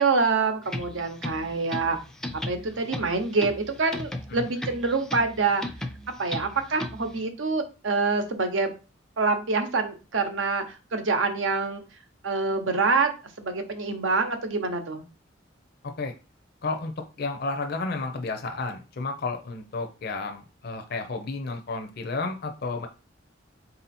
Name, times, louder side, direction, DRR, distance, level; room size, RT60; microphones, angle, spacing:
voice 1, 0.0-2.0 2.3-5.6 6.2-8.7 9.2-11.8 12.2-13.1 13.4-15.0, right 4 dB, 75° right, 7 dB, 0.8 m, -26 dB
sound 1, 0.6-7.2, left 1 dB, 5° left, 0.4 m, -37 dB
voice 2, 15.8-16.1 16.6-22.9, left 3 dB, 55° left, 5 dB, 0.6 m, -32 dB
4.0 x 2.7 x 4.2 m, 0.32 s
head